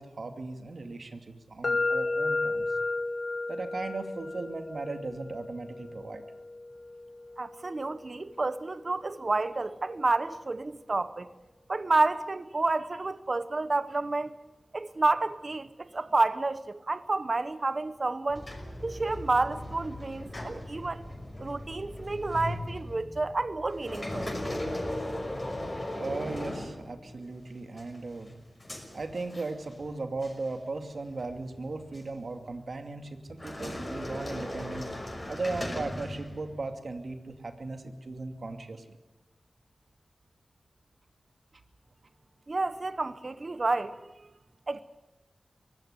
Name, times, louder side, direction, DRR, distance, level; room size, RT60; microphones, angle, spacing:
voice 1, 0.0-2.7 3.5-6.2 24.8-24.9 26.0-28.3 28.9-34.9 35.3-38.8, right 3 dB, 65° right, 2.5 m, -37 dB
sound 1, 1.6-9.5, left 3 dB, 60° left, 1.0 m, -34 dB
voice 2, 7.4-11.3 11.7-14.3 14.7-18.5 18.8-21.0 21.4-24.3 42.5-44.3 44.7-44.8, right 3 dB, 50° right, 0.9 m, -30 dB
sound 2, 18.3-27.3 27.8-29.9 30.2-30.5 31.2-32.1 33.3-36.7, left 1 dB, 30° left, 5.8 m, -38 dB
23.0 x 17.5 x 9.7 m
wide cardioid pair, 55°, 0 cm